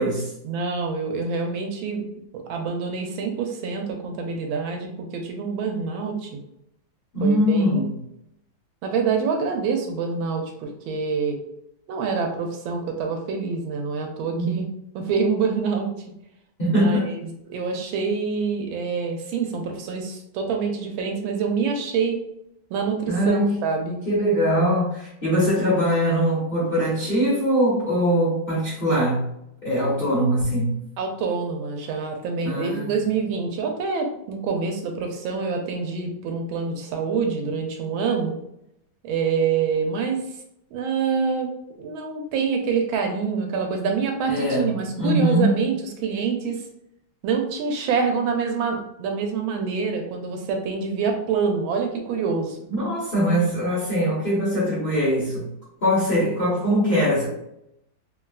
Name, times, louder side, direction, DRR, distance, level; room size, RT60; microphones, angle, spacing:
voice 1, 0.4-2.1 2.3-6.4 7.2-7.8 8.8-11.4 11.9-14.7 14.9-15.9 16.7-22.2 22.7-24.0 31.0-38.4 39.0-40.2 40.7-41.5 41.8-45.8 46.0-46.6 47.2-52.6, right 5 dB, 85° right, 3 dB, 1.4 m, -26 dB
voice 2, 7.1-7.9 14.3-14.5 16.6-17.1 23.1-23.6 24.1-29.3 29.6-30.8 32.4-32.9 44.3-44.7 45.0-45.6 52.7-55.5 55.8-57.3, equal, 35° left, -8 dB, 0.9 m, -22 dB
4.0 x 2.3 x 2.3 m, 0.78 s
omnidirectional pair, 2.2 m